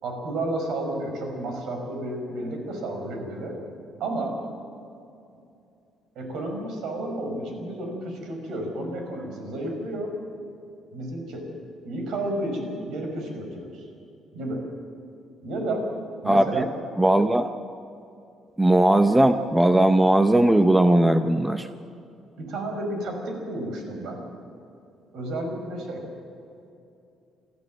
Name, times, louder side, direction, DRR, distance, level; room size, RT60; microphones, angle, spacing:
voice 1, 0.0-3.6 4.0-4.3 6.2-10.1 10.9-11.5 11.9-13.8 14.3-14.7 15.4-15.9 16.2-16.7 22.4-24.2 25.1-26.0, right 1 dB, 70° right, 3 dB, 5.3 m, -31 dB
voice 2, 16.2-16.6 17.0-17.5 18.6-21.7, right 1 dB, 10° right, 8 dB, 0.6 m, -18 dB
26.5 x 14.0 x 7.5 m, 2.6 s
cardioid pair, 150°, 0 cm